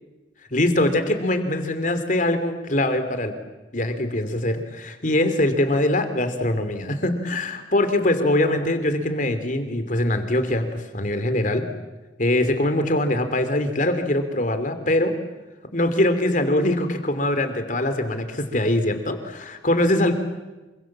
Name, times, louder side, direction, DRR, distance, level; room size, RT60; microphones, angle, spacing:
voice 1, 0.5-3.3 3.7-11.6 12.2-15.1 15.7-20.1, left 1 dB, 45° left, 9 dB, 3.0 m, -22 dB
27.5 x 24.5 x 7.4 m, 1.1 s
head